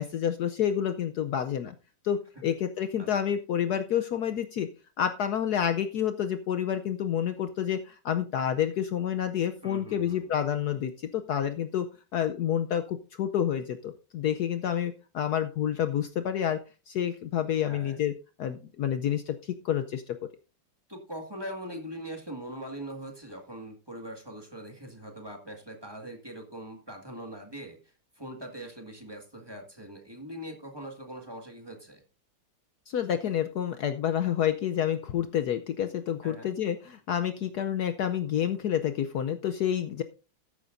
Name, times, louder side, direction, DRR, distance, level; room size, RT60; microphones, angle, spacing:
voice 1, 0.0-1.7 2.0-4.7 5.0-11.9 12.1-16.6 16.9-18.1 18.4-20.2 32.9-40.0, left 9 dB, 65° left, 9 dB, 1.1 m, -29 dB
voice 2, 9.6-10.3 17.7-18.0 20.9-32.0 36.2-36.5, right 1 dB, 15° right, 3 dB, 1.8 m, -42 dB
13.5 x 11.0 x 2.6 m, 0.32 s
omnidirectional pair, 2.0 m